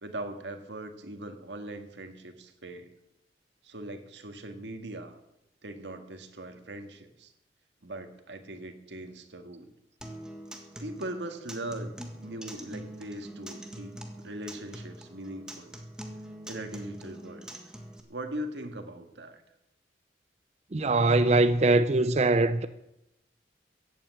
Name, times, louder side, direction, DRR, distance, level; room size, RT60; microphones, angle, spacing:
voice 1, 0.0-2.9 3.6-5.2 5.6-7.3 7.8-9.7 10.8-15.8 16.5-17.5 18.1-19.4, right 1 dB, 90° right, 1.8 m, -40 dB
Acoustic guitar, 10.0-18.0, right 1 dB, 5° right, 1.7 m, -44 dB
voice 2, 20.7-22.7, right 2 dB, 40° right, 0.6 m, -22 dB
15.5 x 8.7 x 8.4 m
head